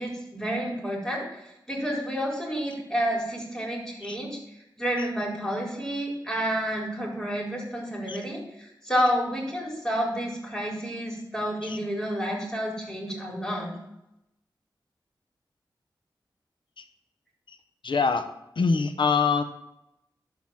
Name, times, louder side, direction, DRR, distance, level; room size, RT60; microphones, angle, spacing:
voice 1, 0.0-1.4 1.7-4.4 4.8-13.8, equal, 5° left, -3 dB, 4.2 m, -30 dB
voice 2, 17.8-18.2 18.6-19.4, left 5 dB, 75° left, 9 dB, 0.8 m, -24 dB
12.0 x 4.0 x 7.3 m, 0.87 s
cardioid pair, 50°, 8 cm